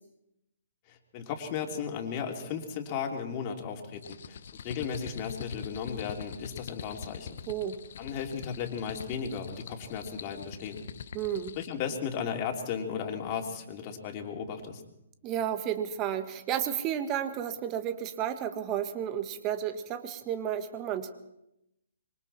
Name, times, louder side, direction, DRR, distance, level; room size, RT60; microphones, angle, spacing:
voice 1, 0.9-7.4 8.0-10.9 11.5-14.8, left 7 dB, 35° left, 2 dB, 3.4 m, -35 dB
sound 1, 3.9-11.8, left 7 dB, 60° left, 1.1 m, -44 dB
voice 2, 7.5-7.8 11.1-11.6 15.2-21.1, right 10 dB, 25° right, 9 dB, 1.8 m, -32 dB
26.0 x 23.5 x 4.5 m, 0.86 s
figure-of-eight pair, 135°, 0 cm